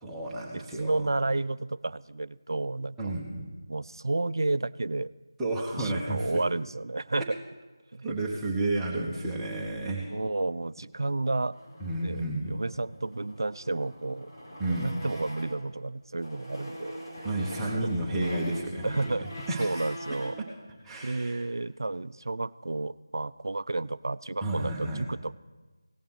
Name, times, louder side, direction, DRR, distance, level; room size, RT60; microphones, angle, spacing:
voice 1, 0.0-1.1 3.0-3.5 5.4-6.4 8.0-10.1 11.8-12.5 14.6-14.9 17.2-19.1 19.5-19.9 20.8-21.5 24.4-25.0, right 2 dB, 5° right, -4 dB, 1.0 m, -31 dB
voice 2, 0.5-3.1 3.7-5.1 5.8-7.4 7.9-8.1 10.1-11.6 11.9-14.3 14.7-17.3 17.6-17.9 18.8-19.3 19.6-20.4 21.0-25.3, right 2 dB, 70° right, 17 dB, 0.4 m, -31 dB
sound 1, 11.5-15.7 16.1-20.5, equal, 70° left, 4.1 m, -43 dB
17.0 x 7.0 x 6.2 m, 1.2 s
figure-of-eight pair, 170°, 2 cm